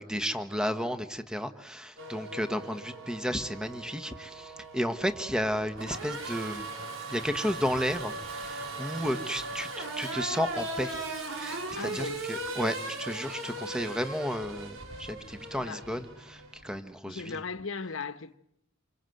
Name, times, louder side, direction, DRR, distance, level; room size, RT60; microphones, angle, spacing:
voice 1, 0.0-6.7 7.1-11.0 11.3-17.3, equal, 5° right, 1.5 m, -33 dB
Race car auto racing / Accelerating revving vroom, 2.0-16.8, right 2 dB, 90° right, 5.3 m, -38 dB
voice 2, 11.8-12.3 15.6-15.8 17.1-18.4, left 4 dB, 80° left, 1.2 m, -37 dB
28.0 x 25.0 x 7.9 m
head